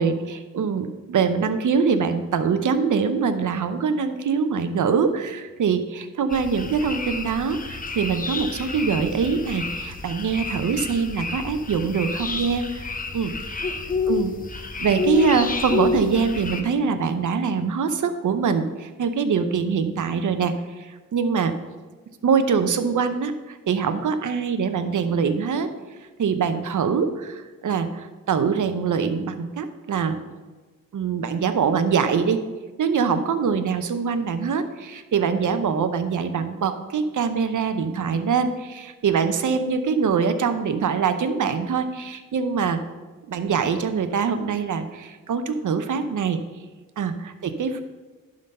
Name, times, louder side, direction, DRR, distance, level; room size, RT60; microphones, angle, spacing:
voice 1, 0.0-13.3 14.1-21.6 22.2-25.7 26.2-30.2 30.9-32.4 32.8-42.8 43.3-46.4 47.0-47.8, right 6 dB, 65° right, 9 dB, 0.8 m, -24 dB
sound 1, 6.3-16.6, left 4 dB, 25° left, 0.8 m, -29 dB
11.0 x 4.0 x 5.4 m, 1.3 s
cardioid pair, 85°, 33 cm